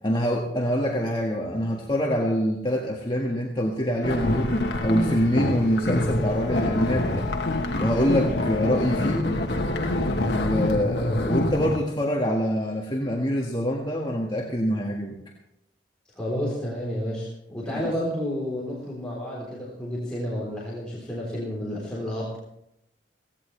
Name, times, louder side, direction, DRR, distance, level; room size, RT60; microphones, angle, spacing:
voice 1, 0.0-4.6 4.8-7.3 7.8-9.4 10.3-15.2 17.7-17.9, equal, 25° left, -2 dB, 1.7 m, -25 dB
sound 1, 4.0-11.8, left 1 dB, 65° left, 1.3 m, -26 dB
voice 2, 16.1-22.4, equal, 5° left, -7 dB, 3.7 m, -31 dB
17.0 x 17.0 x 3.3 m, 0.80 s
head